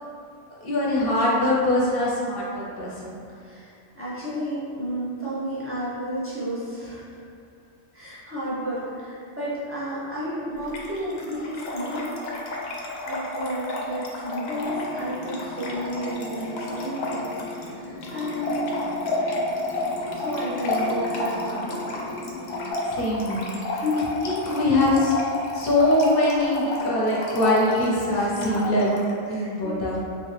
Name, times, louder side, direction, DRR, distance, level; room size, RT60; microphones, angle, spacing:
voice 1, 0.5-3.2 20.6-20.9 22.8-25.2 25.5-28.9 29.3-30.0, left 1 dB, 50° left, -5 dB, 0.8 m, -23 dB
voice 2, 3.3-7.0 7.9-12.1 13.0-18.8 20.1-22.1 23.7-24.1 28.1-28.3 28.7-28.8 29.3-29.9, equal, 20° right, -10 dB, 0.4 m, -32 dB
Trickle dribble / Fill (with liquid), 10.6-29.1, left 2 dB, 90° left, 1.0 m, -31 dB
sound 1, 14.6-22.7, left 2 dB, 25° left, 1.0 m, -38 dB
3.1 x 2.8 x 3.2 m, 2.5 s
omnidirectional pair, 1.4 m